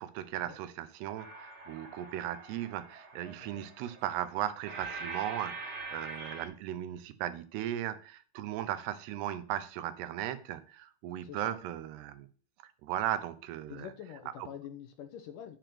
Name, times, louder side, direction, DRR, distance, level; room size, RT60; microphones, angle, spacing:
voice 1, 0.0-12.3 12.6-13.9 14.4-14.5, right 12 dB, 90° right, 3.0 m, -37 dB
sound 1, 1.2-6.5, right 3 dB, 35° right, 3.4 m, -44 dB
voice 2, 11.2-11.5 13.7-15.6, left 9 dB, 70° left, 2.1 m, -46 dB
9.0 x 7.0 x 6.0 m
omnidirectional pair, 4.6 m